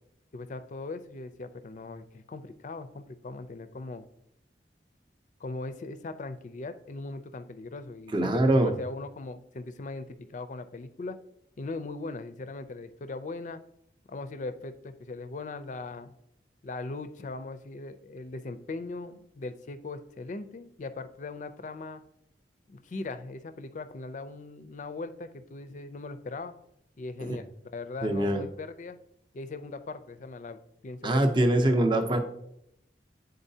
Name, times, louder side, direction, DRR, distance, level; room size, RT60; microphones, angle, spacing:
voice 1, 0.3-4.0 5.4-11.2 11.6-13.6 14.1-16.1 16.6-22.0 22.7-26.5 27.0-29.0 29.3-31.4 31.9-32.0, left 3 dB, 45° left, 10 dB, 0.4 m, -39 dB
voice 2, 8.1-8.7 27.2-27.4 28.0-28.4 31.0-32.2, right 1 dB, 25° right, 5 dB, 0.6 m, -23 dB
9.8 x 3.9 x 2.7 m, 0.76 s
head